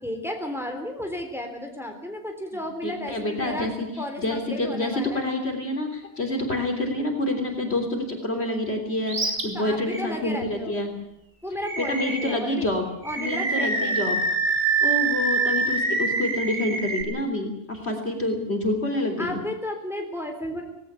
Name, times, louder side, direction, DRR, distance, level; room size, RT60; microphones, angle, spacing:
voice 1, 0.0-3.7 4.0-5.2 9.5-10.8 11.4-12.7 13.0-14.0 19.2-20.6, left 1 dB, ahead, 3 dB, 3.6 m, -33 dB
voice 2, 2.8-3.9 4.2-10.9 11.9-12.9 13.2-14.2 14.8-19.4, left 1 dB, 45° left, 4 dB, 3.8 m, -27 dB
Animal, 9.1-9.4 9.9-10.0 11.6-12.4 13.0-17.0, right 3 dB, 80° right, 3.7 m, -25 dB
18.5 x 17.5 x 10.0 m, 0.80 s
omnidirectional pair, 1.5 m